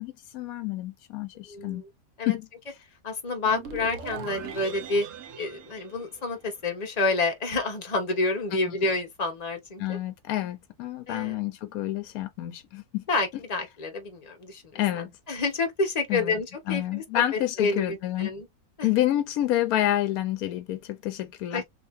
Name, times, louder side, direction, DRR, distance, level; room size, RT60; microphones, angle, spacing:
voice 1, 0.0-1.8 2.3-2.5 8.7-8.8 9.8-13.0 14.7-15.1 16.1-16.3 16.7-18.3 18.8-21.6, left 13 dB, 75° left, 1.0 m, -28 dB
voice 2, 1.5-1.9 2.2-2.4 3.0-5.1 5.3-10.0 11.1-11.4 13.1-14.8 15.3-18.5 18.8-18.9 21.5-21.6, left 3 dB, 30° left, 0.8 m, -29 dB
sound 1, 3.5-6.7, right 6 dB, 65° right, 1.0 m, -40 dB
2.7 x 2.7 x 3.4 m
omnidirectional pair, 1.6 m